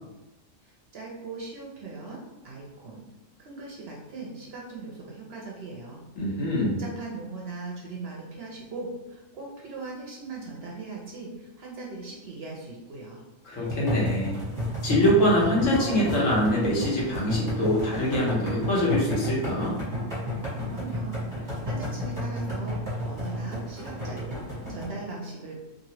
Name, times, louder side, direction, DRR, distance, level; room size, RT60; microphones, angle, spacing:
voice 1, 0.6-3.1 3.4-6.0 6.3-13.2 20.7-25.6, right 3 dB, 60° right, -3 dB, 0.7 m, -39 dB
voice 2, 6.2-6.8 13.4-14.4 14.8-19.7, equal, 70° left, -5 dB, 1.3 m, -24 dB
sound 1, 13.6-24.9, equal, 15° right, 0.9 m, -32 dB
3.0 x 2.6 x 2.8 m, 1.0 s
omnidirectional pair, 1.4 m